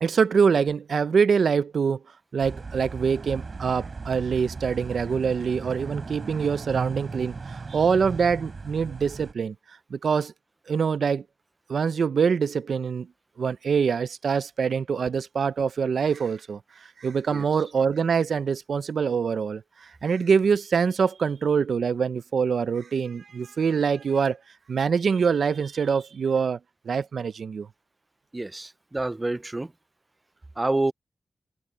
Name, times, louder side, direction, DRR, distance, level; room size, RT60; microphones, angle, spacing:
voice 1, 0.0-2.0 2.3-9.5 9.9-10.3 10.7-11.2 11.7-13.1 13.4-16.6 17.0-24.4 24.7-26.6 26.9-27.7, right 6 dB, 85° right, 0.6 m, -24 dB
sound 1, 2.4-9.3, right 4 dB, 45° right, 5.7 m, -37 dB
voice 2, 28.3-29.7 30.6-30.9, right 2 dB, 20° right, 0.4 m, -27 dB
wide cardioid pair, 125°, 0 cm